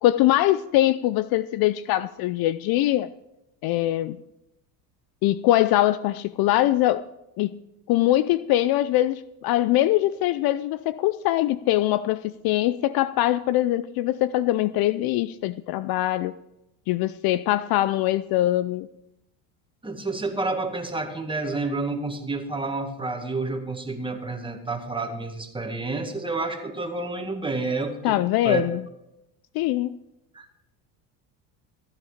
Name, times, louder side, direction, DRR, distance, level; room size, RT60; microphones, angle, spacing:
voice 1, 0.0-3.1 3.6-4.2 5.2-7.0 7.4-7.5 7.9-16.3 16.9-18.9 28.0-28.8 29.5-29.9, left 14 dB, 55° left, 16 dB, 0.5 m, -22 dB
voice 2, 19.8-28.2 28.4-28.6 30.3-30.5, right 3 dB, 10° right, 4 dB, 1.9 m, -29 dB
15.0 x 10.5 x 5.0 m, 0.88 s
supercardioid pair, 100°, 44 cm